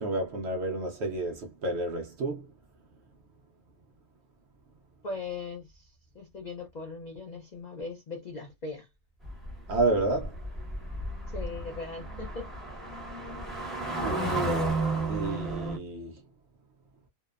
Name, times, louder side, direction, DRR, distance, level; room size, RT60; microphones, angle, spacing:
voice 1, 0.0-2.5 9.7-10.3 15.1-16.2, right 2 dB, 65° right, 0.7 m, -30 dB
voice 2, 5.0-8.9 11.3-12.5, left 3 dB, 70° left, 0.4 m, -39 dB
sound 1, 9.2-15.8, right 2 dB, ahead, 0.7 m, -32 dB
2.8 x 2.0 x 2.3 m
omnidirectional pair, 1.5 m